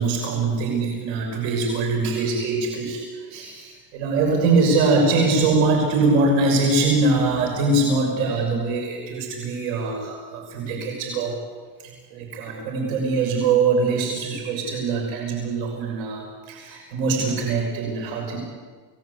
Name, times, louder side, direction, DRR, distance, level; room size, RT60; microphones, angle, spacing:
voice 1, 0.0-11.4 12.1-18.4, right 3 dB, 85° right, 1 dB, 6.4 m, -22 dB
29.5 x 19.5 x 8.3 m, 1.5 s
cardioid pair, 145°, 48 cm